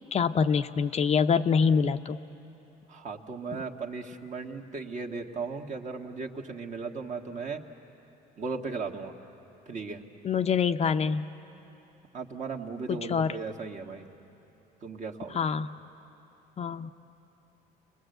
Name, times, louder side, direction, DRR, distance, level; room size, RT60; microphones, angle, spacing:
voice 1, 0.1-2.2 10.2-11.3 12.9-13.4 15.3-15.7 16.6-16.9, left 6 dB, 40° left, 9 dB, 0.6 m, -25 dB
voice 2, 2.9-7.6 8.4-9.1 9.7-10.0 12.1-14.1 14.8-15.4, right 4 dB, 45° right, 3 dB, 1.6 m, -36 dB
29.5 x 21.0 x 8.0 m, 2.9 s
cardioid pair, 110°, 17 cm